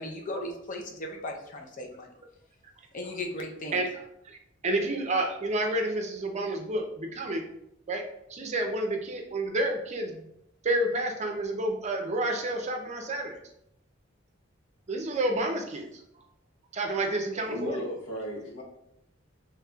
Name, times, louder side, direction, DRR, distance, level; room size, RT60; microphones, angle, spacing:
voice 1, 0.0-2.1 2.9-3.8, left 1 dB, 40° left, 2 dB, 0.6 m, -37 dB
voice 2, 4.6-7.4 7.9-8.0 8.3-10.2 10.6-13.4 14.9-15.9 16.7-17.8, right 1 dB, 35° right, 2 dB, 0.6 m, -29 dB
voice 3, 17.4-18.6, equal, 80° left, -2 dB, 1.1 m, -35 dB
5.2 x 3.1 x 2.3 m, 0.80 s
head